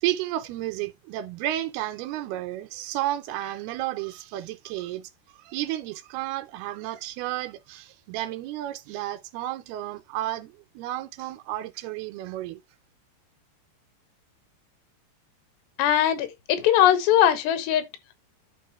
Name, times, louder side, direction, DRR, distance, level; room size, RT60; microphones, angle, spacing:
voice 1, 0.0-12.6, right 14 dB, 85° right, 2.3 m, -32 dB
voice 2, 15.8-17.9, left 11 dB, 90° left, 3.1 m, -20 dB
11.5 x 3.8 x 2.9 m
omnidirectional pair, 4.8 m